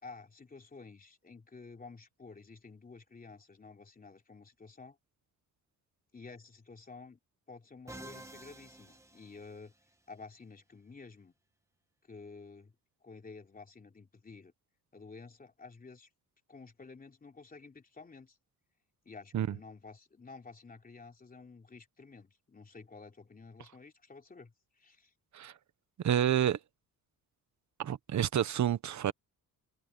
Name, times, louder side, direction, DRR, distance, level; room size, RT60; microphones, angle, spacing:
voice 1, 0.0-5.0 6.1-7.2 7.5-9.7 10.1-11.3 12.1-12.7 13.0-14.5 14.9-16.1 16.5-18.4 19.0-25.1, left 4 dB, 25° left, 3.1 m, -51 dB
Musical instrument, 7.9-10.0, right 1 dB, 10° right, 1.9 m, -50 dB
voice 2, 26.0-26.6 27.8-29.1, right 10 dB, 55° right, 1.2 m, -29 dB
cardioid pair, 135°, 34 cm